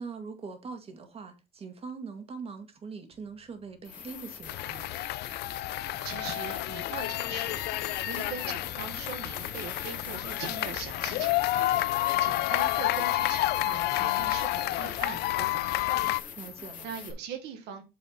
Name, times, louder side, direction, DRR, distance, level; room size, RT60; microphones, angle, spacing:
voice 1, 0.0-4.9 16.4-16.9, right 5 dB, 35° right, 2.0 m, -42 dB
sound 1, 3.1-3.2 3.8-17.1, left 7 dB, 50° left, 1.8 m, -42 dB
sound 2, 4.5-16.2, left 16 dB, 75° left, 0.4 m, -30 dB
voice 2, 6.0-7.6 8.0-11.7 12.2-16.1 16.8-17.8, right 7 dB, 85° right, 1.3 m, -41 dB
8.2 x 4.0 x 3.9 m
cardioid pair, 110°, 17 cm